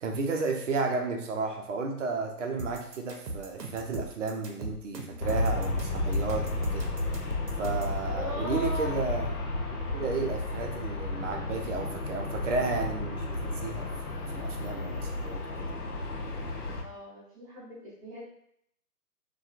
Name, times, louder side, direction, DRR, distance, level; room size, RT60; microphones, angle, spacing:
voice 1, 0.0-6.9 7.6-9.5 9.9-13.9 14.1-15.7, right 4 dB, 50° right, 2 dB, 0.6 m, -33 dB
sound 1, 2.6-8.0, right 2 dB, 85° right, 0.7 m, -39 dB
Aircraft, 5.2-16.8, left 2 dB, 65° left, 0.7 m, -32 dB
voice 2, 8.0-8.9 16.8-18.3, equal, 10° right, -12 dB, 0.7 m, -39 dB
2.7 x 2.3 x 2.4 m, 0.69 s
figure-of-eight pair, 135°, 48 cm